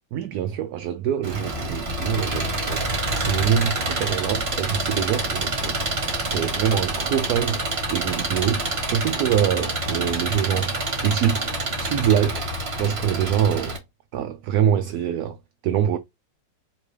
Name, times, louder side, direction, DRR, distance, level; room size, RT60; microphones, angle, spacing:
voice 1, 0.1-5.9 6.3-12.5 12.8-13.8 14.1-15.4 15.6-16.0, right 9 dB, 70° right, 0.9 m, -25 dB
Engine, 1.2-13.8, right 2 dB, 40° right, 1.4 m, -27 dB
5.0 x 3.1 x 3.2 m
omnidirectional pair, 2.0 m